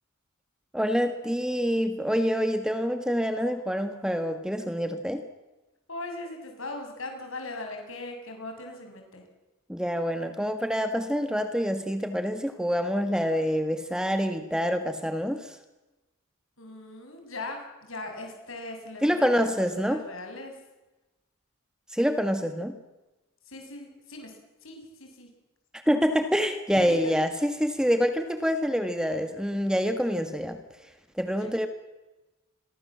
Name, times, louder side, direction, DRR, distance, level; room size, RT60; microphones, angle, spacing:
voice 1, 0.7-5.2 9.7-15.6 19.0-20.0 21.9-22.7 25.9-30.6 31.2-31.7, equal, 5° right, 8 dB, 1.6 m, -26 dB
voice 2, 5.9-9.2 16.6-20.6 23.5-24.4 24.6-25.3 26.9-27.1 31.3-31.5, left 2 dB, 65° left, 4 dB, 6.9 m, -39 dB
28.5 x 23.5 x 7.5 m, 1.1 s
head